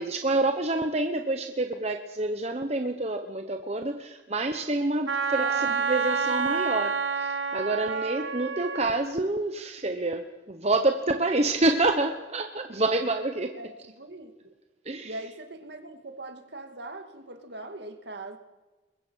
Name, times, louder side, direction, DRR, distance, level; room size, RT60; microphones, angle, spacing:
voice 1, 0.0-13.6 14.8-15.1, right 2 dB, 35° right, 6 dB, 1.1 m, -27 dB
Wind instrument woodwind instrument, 5.1-8.9, right 5 dB, 80° right, 2.0 m, -28 dB
voice 2, 5.4-5.7 13.6-14.5 15.0-18.4, right 2 dB, 60° right, 6 dB, 2.4 m, -41 dB
23.0 x 22.0 x 6.4 m, 1.2 s
head